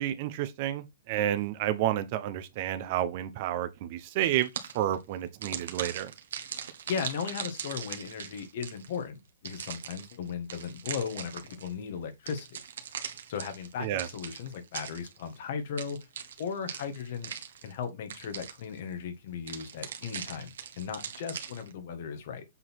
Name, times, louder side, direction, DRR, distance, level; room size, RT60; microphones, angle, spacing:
voice 1, 0.0-4.5 4.7-6.1 13.8-14.1, right 12 dB, 35° right, 0.9 m, -30 dB
sound 1, 4.2-5.0 5.4-9.0 9.4-11.7 12.3-15.4 15.8-17.8 18.1-18.8 19.5-21.7, right 8 dB, 70° right, 1.5 m, -40 dB
voice 2, 6.9-12.6 13.3-16.0 16.4-17.3 17.6-22.4, left 6 dB, 45° left, 1.8 m, -37 dB
7.7 x 4.0 x 4.6 m
hypercardioid pair, 165°, 0 cm